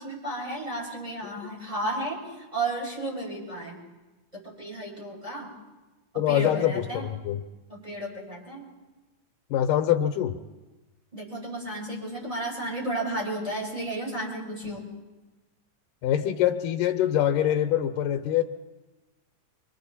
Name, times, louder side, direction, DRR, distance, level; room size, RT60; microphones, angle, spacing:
voice 1, 0.0-2.2 2.5-3.8 4.3-5.5 6.3-7.0 7.7-8.6 11.1-14.9, right 1 dB, 10° right, -4 dB, 7.4 m, -33 dB
voice 2, 6.2-7.4 9.5-10.3 16.0-18.4, left 11 dB, 85° left, 5 dB, 2.5 m, -24 dB
29.5 x 25.5 x 4.3 m, 1.1 s
omnidirectional pair, 3.8 m